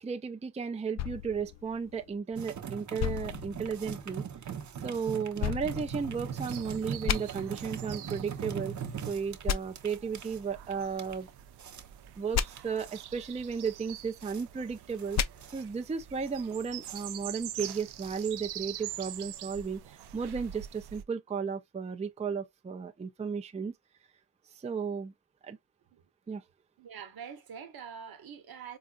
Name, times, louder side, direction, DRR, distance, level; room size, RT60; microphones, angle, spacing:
voice 1, 0.0-4.2 4.8-8.8 9.1-11.3 12.2-15.2 15.5-23.7 24.5-25.1 25.4-25.6 26.3-26.4, right 6 dB, 20° right, 0.5 m, -34 dB
sound 1, 1.0-2.4 3.0-4.2 5.4-6.6 7.1-7.2 9.5-9.6 12.3-12.5 15.1-15.3, left 9 dB, 45° left, 0.4 m, -33 dB
sound 2, 2.4-18.7, right 7 dB, 50° right, 0.8 m, -41 dB
sound 3, 5.9-21.0, right 12 dB, 85° right, 0.6 m, -46 dB
voice 2, 26.8-28.8, right 7 dB, 70° right, 1.0 m, -45 dB
4.0 x 2.5 x 2.4 m
cardioid pair, 65°, 38 cm